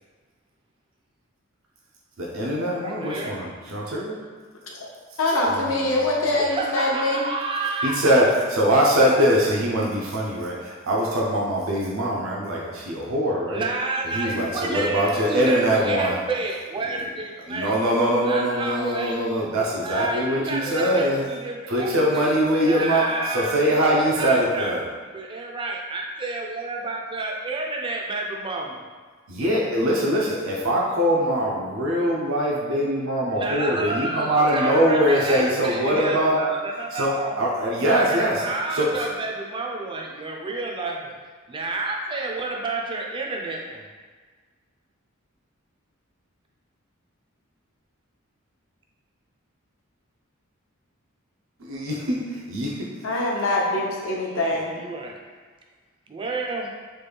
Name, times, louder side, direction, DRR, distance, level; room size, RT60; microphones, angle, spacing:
voice 1, 2.2-4.1 5.5-5.9 7.8-13.6 14.1-16.2 17.5-21.2 21.7-23.0 23.3-24.8 29.3-36.4 36.9-38.4 38.7-38.9 51.6-52.7, equal, 75° right, -4 dB, 0.5 m, -22 dB
voice 2, 2.8-3.4 6.5-8.0 13.5-17.7 18.2-19.2 19.8-24.8 25.1-28.8 33.3-37.4 37.8-41.1 41.5-43.9 54.3-55.2 56.1-56.7, right 3 dB, 25° right, 0 dB, 0.4 m, -30 dB
voice 3, 5.2-7.2 53.0-54.8, left 2 dB, 75° left, -2 dB, 0.6 m, -23 dB
3.2 x 2.2 x 3.3 m, 1.5 s
head